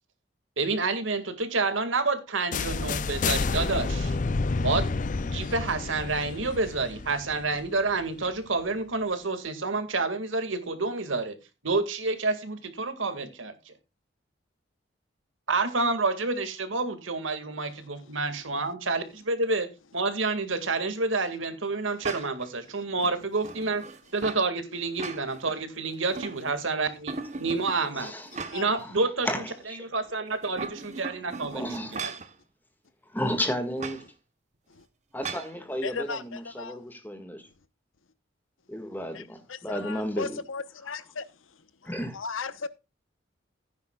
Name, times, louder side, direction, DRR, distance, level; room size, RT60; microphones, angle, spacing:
voice 1, 0.6-4.2 4.6-4.9 5.3-11.4 11.6-13.7 15.5-23.9 24.1-28.1 28.5-29.3 29.9-32.1, right 3 dB, 80° right, 2.1 m, -29 dB
sound 1, 2.5-8.3, left 4 dB, 40° left, 0.5 m, -30 dB
voice 2, 17.8-18.1 28.5-28.7 30.7-30.8 34.7-34.9 35.8-36.8 39.1-39.2 39.5-41.2 42.1-42.7, left 4 dB, 90° left, 1.0 m, -36 dB
sound 2, 22.0-22.5 23.0-24.5 24.8-25.6 25.9-26.7 27.1-28.8 29.2-29.3 30.3-32.3 33.8-34.0 35.2-35.5, right 4 dB, 35° right, 1.2 m, -38 dB
voice 3, 27.9-29.9 31.5-32.1 33.1-34.0 35.1-37.5 38.7-40.4 41.8-42.2, equal, 10° left, 1.8 m, -33 dB
15.5 x 9.8 x 2.4 m
head